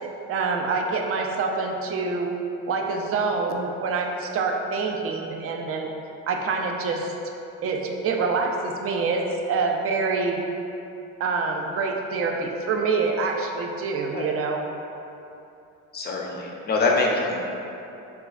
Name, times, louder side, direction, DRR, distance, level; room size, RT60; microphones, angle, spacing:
voice 1, 0.0-2.4 2.7-5.9 6.3-7.1 7.6-9.2 9.5-10.4 11.2-14.6, right 4 dB, 40° right, 2 dB, 0.4 m, -26 dB
voice 2, 15.9-17.4, left 3 dB, 25° left, -1 dB, 0.5 m, -24 dB
3.8 x 2.3 x 2.4 m, 2.8 s
supercardioid pair, 85°, 36 cm